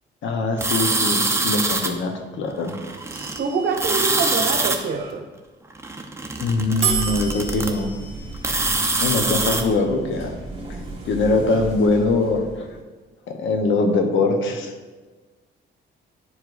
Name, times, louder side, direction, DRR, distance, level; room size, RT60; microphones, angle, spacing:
voice 1, 0.2-2.8 6.4-7.9 9.0-10.4 11.0-12.6 13.3-14.7, left 3 dB, 75° left, 4 dB, 1.0 m, -22 dB
sound 1, 0.6-1.9 2.7-3.4 3.7-4.8 5.7-7.7 8.3-9.6, right 2 dB, 15° right, 0.8 m, -23 dB
sound 2, 3.1-5.1 6.8-12.8, right 5 dB, 30° right, 1.9 m, -32 dB
voice 2, 3.4-5.2, right 5 dB, 65° right, 5 dB, 0.9 m, -25 dB
10.5 x 4.8 x 2.6 m, 1.3 s
cardioid pair, 90°, 20 cm